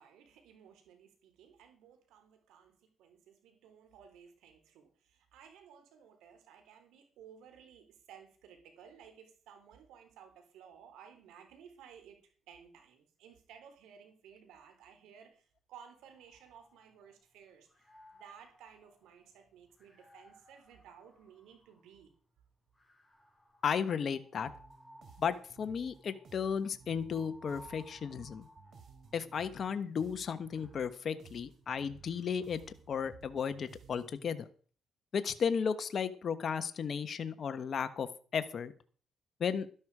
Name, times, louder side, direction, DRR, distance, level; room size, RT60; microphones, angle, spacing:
voice 1, 0.0-17.7 18.1-22.1, right 8 dB, 90° right, 6 dB, 3.6 m, -57 dB
sound 1, 16.1-17.3 17.7-22.0 22.7-29.4 30.2-32.8, equal, 5° left, 6.1 m, -61 dB
voice 2, 23.6-24.5 25.2-28.5 29.1-32.6 32.9-34.5 35.1-38.7 39.4-39.7, left 7 dB, 50° left, 11 dB, 1.2 m, -34 dB
sound 2, 24.4-34.3, right 6 dB, 60° right, 2.9 m, -57 dB
12.5 x 11.5 x 4.9 m, 0.41 s
cardioid pair, 90°, 0 cm